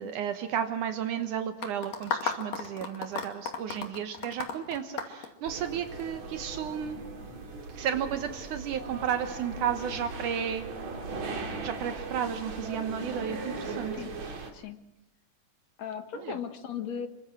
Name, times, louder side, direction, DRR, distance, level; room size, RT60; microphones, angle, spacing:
voice 1, 0.0-7.0 7.7-10.7 11.6-14.0 16.2-16.4, right 8 dB, 75° right, 8 dB, 2.7 m, -33 dB
sound 1, 1.6-6.0, left 6 dB, 85° left, 4.0 m, -34 dB
sound 2, 5.4-14.5, right 3 dB, 60° right, 4.1 m, -39 dB
voice 2, 15.8-17.1, left 8 dB, 60° left, 8 dB, 2.7 m, -37 dB
28.0 x 24.0 x 6.2 m, 0.83 s
omnidirectional pair, 3.6 m